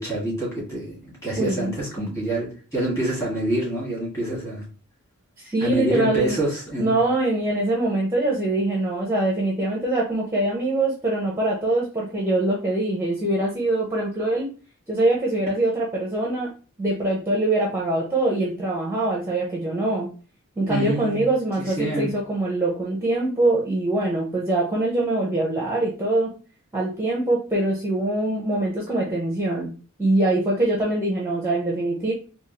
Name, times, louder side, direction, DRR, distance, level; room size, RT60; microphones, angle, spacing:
voice 1, 0.0-4.6 5.6-7.0 20.7-21.3 21.8-22.1, right 1 dB, 15° left, -5 dB, 1.8 m, -26 dB
voice 2, 1.4-1.7 2.0-2.1 5.4-6.4 6.8-14.5 14.9-16.5 16.8-20.1 20.6-26.3 26.7-29.7 30.0-32.1, right 2 dB, 10° right, -3 dB, 0.6 m, -23 dB
3.5 x 2.7 x 2.9 m, 0.37 s
head